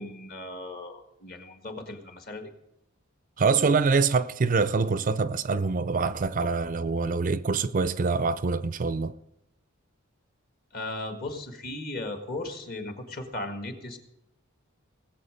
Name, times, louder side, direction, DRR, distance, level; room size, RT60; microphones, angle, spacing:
voice 1, 0.0-2.5 10.7-14.0, left 2 dB, 45° left, 1.8 m, -37 dB
voice 2, 3.4-9.1, right 4 dB, 40° right, 0.4 m, -25 dB
19.5 x 7.6 x 5.1 m
head